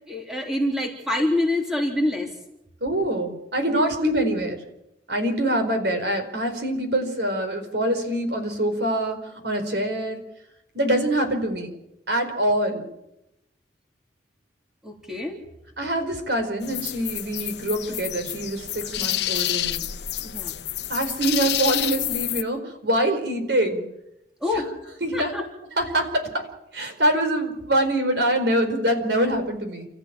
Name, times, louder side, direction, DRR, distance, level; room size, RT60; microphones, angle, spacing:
voice 1, 0.1-2.3 3.7-3.8 14.8-15.4 20.2-20.6 24.4-24.7 25.1-25.4, left 1 dB, 5° right, 1 dB, 3.7 m, -26 dB
voice 2, 2.8-4.6 5.1-10.2 10.7-11.7 12.1-12.8 15.8-19.8 20.9-23.8 24.5-24.6 25.0-25.3 25.8-26.5 26.7-29.9, right 1 dB, 65° right, 6 dB, 4.6 m, -24 dB
sound 1, 16.6-22.4, left 13 dB, 70° left, 1.0 m, -28 dB
29.5 x 14.5 x 8.8 m, 0.87 s
head